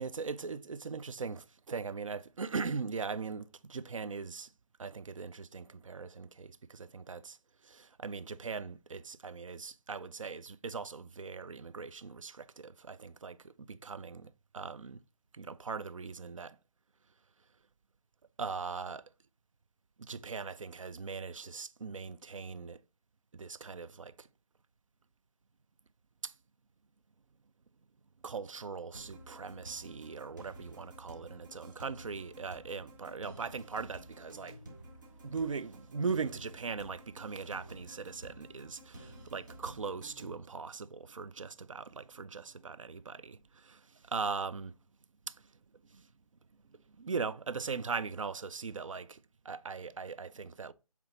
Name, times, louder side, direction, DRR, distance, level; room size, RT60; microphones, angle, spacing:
voice 1, 0.0-4.5 4.8-7.4 7.7-15.0 15.4-16.6 18.4-19.0 20.0-22.8 23.3-24.3 26.2-26.3 28.2-34.6 35.2-43.8 44.1-44.7 45.9-46.1 47.0-50.7, right 5 dB, 60° right, 0.4 m, -40 dB
sound 1, 28.9-40.4, right 1 dB, 30° right, 1.3 m, -52 dB
8.1 x 3.6 x 4.0 m
figure-of-eight pair, 175°, 19 cm